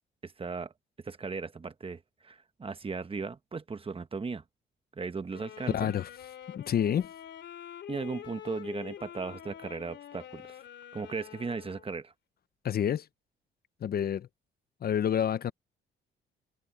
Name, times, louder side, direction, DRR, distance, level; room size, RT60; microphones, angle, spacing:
voice 1, 0.2-0.7 1.0-4.4 4.9-5.9 7.9-10.6 10.9-12.1, right 4 dB, 30° right, 1.2 m, -37 dB
sound 1, 5.3-11.9, left 10 dB, 65° left, 2.8 m, -46 dB
voice 2, 5.7-6.1 6.5-7.1 12.6-13.1 13.8-14.3 14.8-15.5, left 9 dB, 50° left, 0.6 m, -28 dB
cardioid pair, 90°, 20 cm